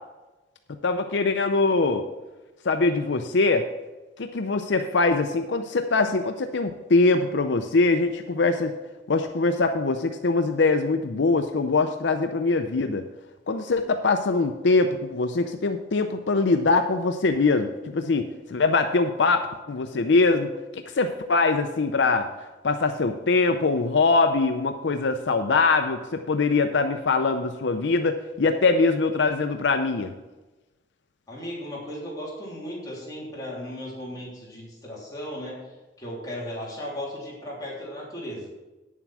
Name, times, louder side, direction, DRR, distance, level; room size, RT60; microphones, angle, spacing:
voice 1, 0.8-2.0 2.6-3.7 4.2-8.7 9.1-13.1 13.5-22.3 22.6-30.1, left 3 dB, 75° left, 7 dB, 0.6 m, -23 dB
voice 2, 31.3-35.7 36.0-38.5, equal, 20° left, -6 dB, 3.2 m, -36 dB
9.4 x 7.4 x 6.2 m, 1.1 s
head